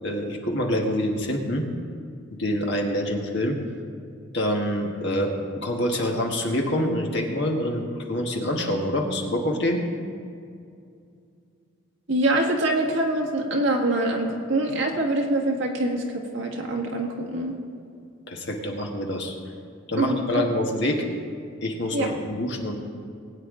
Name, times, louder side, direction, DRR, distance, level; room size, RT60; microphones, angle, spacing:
voice 1, 0.0-1.7 2.4-3.6 4.3-9.8 18.3-19.4 19.9-21.0 21.6-22.8, left 1 dB, 55° left, 1 dB, 1.6 m, -26 dB
voice 2, 12.1-17.6 20.0-20.5 21.9-22.1, right 1 dB, 60° right, 0 dB, 1.8 m, -24 dB
20.0 x 9.1 x 3.8 m, 2.4 s
head